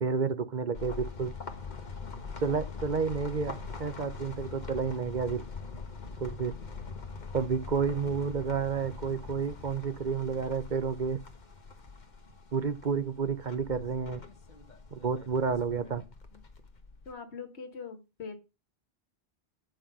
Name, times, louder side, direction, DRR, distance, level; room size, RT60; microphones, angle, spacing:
voice 1, 0.0-1.3 2.4-3.5 3.8-5.4 6.2-6.5 7.3-11.2 12.5-14.2 14.9-16.0, right 5 dB, 45° right, 1.0 m, -30 dB
sound 1, 0.7-17.1, left 4 dB, 45° left, 1.3 m, -43 dB
voice 2, 17.1-18.4, left 5 dB, 80° left, 1.8 m, -42 dB
9.3 x 6.1 x 5.5 m
omnidirectional pair, 1.1 m